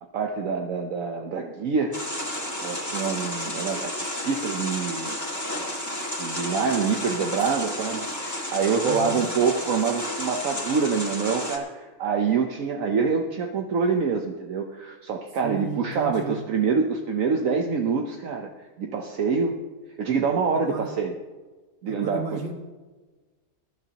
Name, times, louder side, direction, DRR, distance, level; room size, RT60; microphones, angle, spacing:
voice 1, 0.1-2.0 2.6-5.2 6.2-18.5 18.8-19.6 20.0-21.1 21.8-22.4, right 5 dB, 65° right, 2 dB, 1.3 m, -26 dB
sound 1, 1.9-11.6, left 1 dB, 10° left, 2.1 m, -32 dB
voice 2, 8.8-9.3 15.4-16.4 20.5-20.9 21.9-22.5, right 5 dB, 45° right, 3 dB, 1.9 m, -33 dB
21.5 x 12.0 x 2.9 m, 1.3 s
omnidirectional pair, 1.5 m